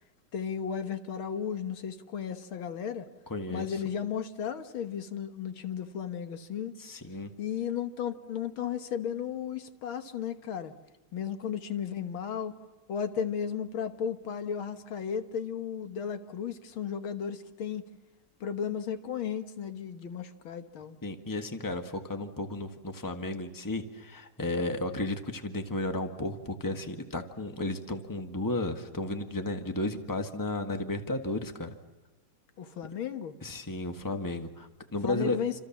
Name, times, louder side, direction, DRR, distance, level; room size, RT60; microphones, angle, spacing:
voice 1, 0.3-3.1 3.5-6.8 7.4-10.7 11.1-12.5 12.9-17.8 18.4-21.0 32.6-33.3 35.0-35.6, left 8 dB, 80° left, 9 dB, 2.1 m, -34 dB
voice 2, 3.3-3.8 6.8-7.3 21.0-31.7 33.4-35.4, left 2 dB, 10° left, 7 dB, 1.5 m, -33 dB
28.5 x 27.0 x 7.3 m, 1.1 s
omnidirectional pair, 2.2 m